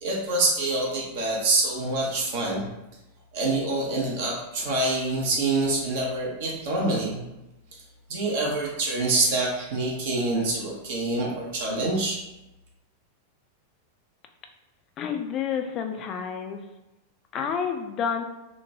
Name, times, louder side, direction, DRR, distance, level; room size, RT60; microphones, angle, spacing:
voice 1, 0.0-2.7 3.3-7.2 8.1-12.2, right 2 dB, 50° right, -3 dB, 0.6 m, -26 dB
voice 2, 15.0-16.6 17.3-18.2, left 7 dB, 30° left, 5 dB, 0.3 m, -29 dB
2.9 x 2.1 x 2.6 m, 0.97 s
figure-of-eight pair, 90°, 0 cm